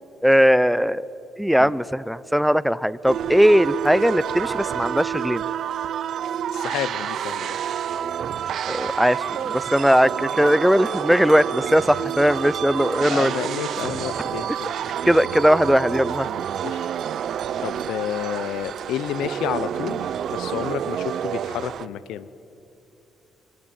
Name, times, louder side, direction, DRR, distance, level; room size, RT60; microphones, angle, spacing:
voice 1, 0.2-1.1 1.4-5.4 8.7-13.3 15.1-16.3, equal, ahead, 18 dB, 0.6 m, -19 dB
sound 1, 3.1-21.9, right 9 dB, 65° right, 0.7 m, -28 dB
voice 2, 6.5-7.6 13.1-14.8 16.6-16.8 17.6-22.3, left 11 dB, 90° left, 17 dB, 0.9 m, -30 dB
25.5 x 23.5 x 8.9 m, 2.8 s
cardioid pair, 90°, 0 cm